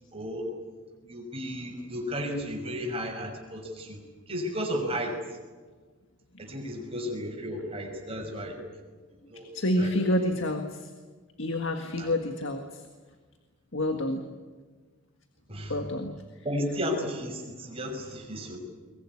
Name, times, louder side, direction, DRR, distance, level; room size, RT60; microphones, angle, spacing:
voice 1, 0.1-0.5 1.1-4.0 4.3-5.1 6.4-8.6 9.3-9.5 9.8-10.1 12.0-12.1 15.5-15.9 16.4-18.6, equal, 25° right, 1 dB, 5.9 m, -33 dB
voice 2, 9.5-10.9 11.4-12.8 13.7-14.2 15.7-16.1, left 1 dB, 60° left, 5 dB, 1.8 m, -28 dB
22.5 x 21.5 x 9.8 m, 1.4 s
head